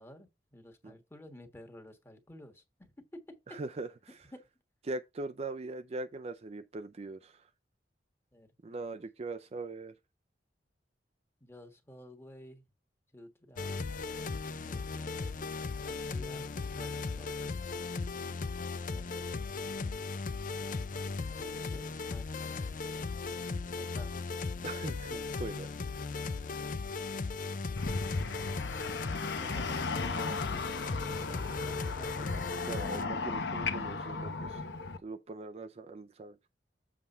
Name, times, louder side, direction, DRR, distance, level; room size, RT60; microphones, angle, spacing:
voice 1, 0.0-2.9 4.3-4.4 8.3-8.9 11.4-12.6 13.1-13.8 14.6-15.3 15.8-16.5 16.7-17.5 18.9-20.0 20.5-22.8 23.8-24.2 29.2-30.9 31.3-32.5, left 1 dB, 15° left, 1.4 m, -53 dB
voice 2, 3.5-3.9 4.9-7.4 8.6-9.9 24.6-25.7 26.2-26.4 32.6-34.6 35.0-36.4, right 3 dB, 35° right, 0.5 m, -41 dB
sound 1, 13.6-33.0, left 4 dB, 50° left, 0.5 m, -37 dB
sound 2, 27.8-35.0, left 4 dB, 70° left, 1.0 m, -36 dB
7.5 x 3.5 x 5.5 m
head